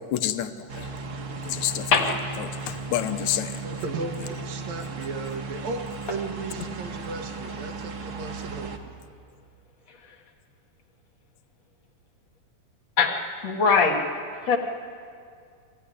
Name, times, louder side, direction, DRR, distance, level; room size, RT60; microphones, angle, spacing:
voice 1, 0.1-0.9 1.5-1.9 2.7-3.5, left 12 dB, 80° left, 9 dB, 2.2 m, -28 dB
sound 1, 0.7-8.8, right 4 dB, 50° right, 2.0 m, -36 dB
voice 2, 3.6-9.0, right 3 dB, 65° right, 4 dB, 2.9 m, -36 dB
voice 3, 13.4-14.0 14.4-14.6, left 5 dB, 60° left, 2 dB, 2.8 m, -20 dB
23.0 x 15.0 x 9.8 m, 2.3 s
omnidirectional pair, 3.4 m